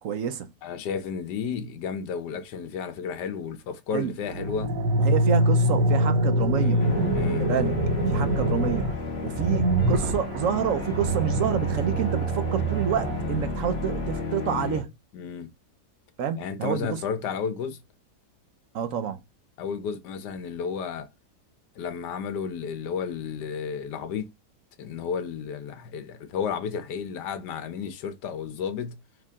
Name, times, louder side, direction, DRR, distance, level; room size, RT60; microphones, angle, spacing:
voice 1, 0.0-0.5 3.9-4.1 5.0-6.9 7.3-7.8 8.1-14.9 16.2-17.0 18.7-19.2, right 8 dB, 65° right, 0.9 m, -28 dB
voice 2, 0.6-4.7 6.6-7.5 15.1-15.5 16.4-17.8 19.6-21.1 21.7-24.3 24.8-29.0, left 6 dB, 75° left, 1.4 m, -32 dB
sound 1, 4.2-14.2, right 1 dB, 85° right, 1.4 m, -25 dB
sound 2, 6.8-14.8, left 4 dB, 45° left, 1.1 m, -33 dB
4.7 x 2.9 x 3.5 m
omnidirectional pair, 1.8 m